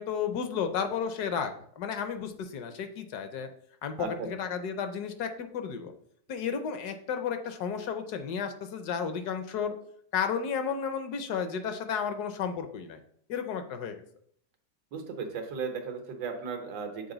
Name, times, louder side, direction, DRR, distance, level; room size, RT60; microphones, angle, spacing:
voice 1, 0.0-3.5 3.8-5.9 6.3-9.7 10.1-13.0 13.3-14.0, left 7 dB, 70° left, 8 dB, 1.2 m, -33 dB
voice 2, 4.0-4.3 14.9-17.1, right 5 dB, 90° right, 4 dB, 1.7 m, -36 dB
7.0 x 4.1 x 3.8 m, 0.65 s
omnidirectional pair, 1.9 m